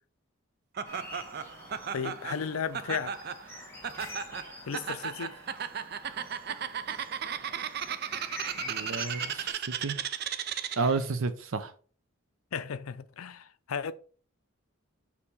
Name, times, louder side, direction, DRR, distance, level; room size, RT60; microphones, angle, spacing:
sound 1, 0.8-9.5, left 1 dB, 10° left, 1.4 m, -46 dB
Laughter, 0.8-11.0, right 8 dB, 45° right, 0.4 m, -36 dB
voice 1, 1.9-3.1 4.7-5.3 12.5-13.9, left 6 dB, 85° left, 0.5 m, -34 dB
voice 2, 8.5-10.0 10.8-11.7, right 4 dB, 75° right, 0.7 m, -31 dB
6.5 x 2.9 x 5.4 m
head